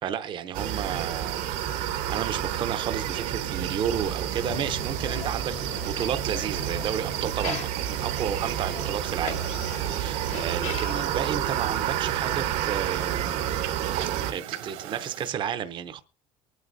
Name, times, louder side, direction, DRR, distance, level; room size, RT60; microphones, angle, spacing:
voice 1, 0.0-1.4 1.7-9.4 9.9-13.5 14.3-16.0, right 8 dB, 40° right, 0.7 m, -32 dB
sound 1, 0.5-14.3, right 11 dB, 70° right, 1.1 m, -30 dB
sound 2, 4.2-11.2, left 9 dB, 60° left, 1.1 m, -41 dB
sound 3, 6.1-15.3, right 10 dB, 85° right, 2.0 m, -42 dB
23.5 x 9.5 x 2.6 m
cardioid pair, 130°, 13 cm